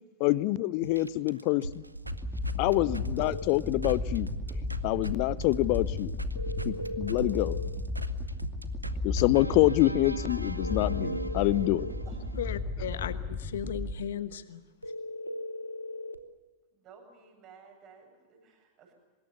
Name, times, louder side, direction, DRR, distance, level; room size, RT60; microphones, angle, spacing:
voice 1, 0.2-1.8 2.6-4.3 4.8-6.1 6.6-7.6 9.0-11.9, left 18 dB, 45° left, 21 dB, 0.7 m, -26 dB
sound 1, 0.8-5.1 5.4-12.6, right 2 dB, 85° right, 0.9 m, -39 dB
sound 2, 2.0-13.9, left 2 dB, 5° right, 3.5 m, -35 dB
sound 3, 3.2-3.5 6.4-7.8 10.6-12.0 14.8-16.2, left 2 dB, 90° left, 1.1 m, -38 dB
voice 2, 12.4-14.6, left 9 dB, 60° left, 14 dB, 1.2 m, -36 dB
voice 3, 16.7-18.9, right 6 dB, 35° right, 2 dB, 7.9 m, -55 dB
24.5 x 21.5 x 7.0 m, 1.3 s
figure-of-eight pair, 90°, 0 cm